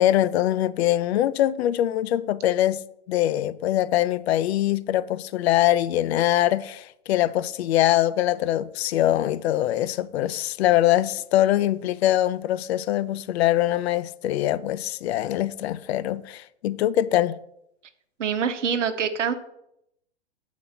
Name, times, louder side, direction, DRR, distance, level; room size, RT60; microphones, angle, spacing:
voice 1, 0.0-17.3, left 13 dB, 60° left, 0.5 m, -23 dB
voice 2, 18.2-19.3, right 7 dB, 80° right, 1.0 m, -25 dB
7.3 x 4.1 x 5.8 m
hypercardioid pair, 120°, 36 cm